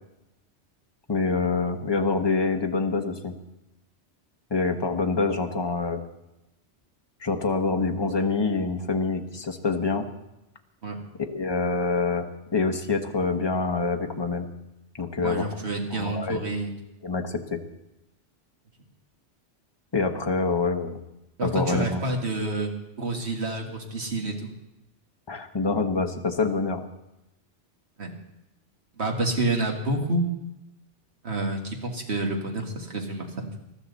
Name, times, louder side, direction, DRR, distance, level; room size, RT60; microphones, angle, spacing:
voice 1, 1.1-3.3 4.5-6.0 7.2-10.1 11.2-14.5 14.9-15.5 15.9-16.4 17.0-17.6 19.9-21.0 21.4-22.0 25.3-26.8, left 4 dB, 25° left, 5 dB, 1.1 m, -26 dB
voice 2, 15.2-16.7 21.4-22.7 23.0-24.5 28.0-28.1 29.0-30.2 31.2-33.6, right 2 dB, 65° right, 2 dB, 2.3 m, -28 dB
20.0 x 13.0 x 4.1 m, 0.91 s
omnidirectional pair, 1.2 m